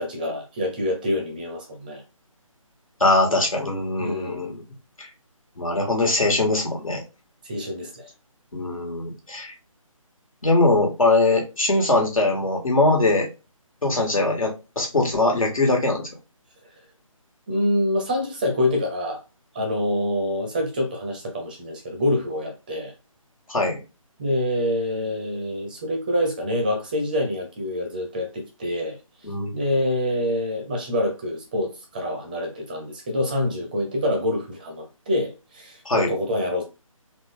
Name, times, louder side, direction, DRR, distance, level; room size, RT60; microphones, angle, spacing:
voice 1, 0.0-2.0 4.0-4.4 7.4-8.1 17.5-19.2 19.5-22.9 24.2-29.0 29.5-36.6, left 1 dB, 15° right, 0.5 m, -26 dB
voice 2, 3.0-4.6 5.0-5.1 5.6-7.0 8.5-9.5 10.4-13.3 13.8-16.1 23.5-23.8 29.2-29.5 35.8-36.1, left 2 dB, 70° left, 1.6 m, -21 dB
3.8 x 2.3 x 3.4 m
figure-of-eight pair, 155°, 18 cm